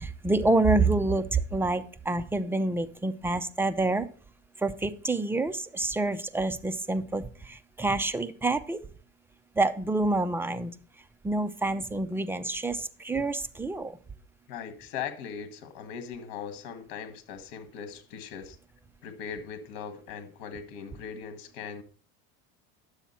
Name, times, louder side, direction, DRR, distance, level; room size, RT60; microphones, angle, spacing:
voice 1, 0.0-4.1 4.6-8.8 9.6-10.7 11.2-14.0, right 2 dB, 10° right, 0.5 m, -27 dB
voice 2, 14.5-18.6 19.0-21.8, left 7 dB, 75° left, 1.6 m, -39 dB
10.0 x 7.2 x 4.2 m
supercardioid pair, 130°, 29 cm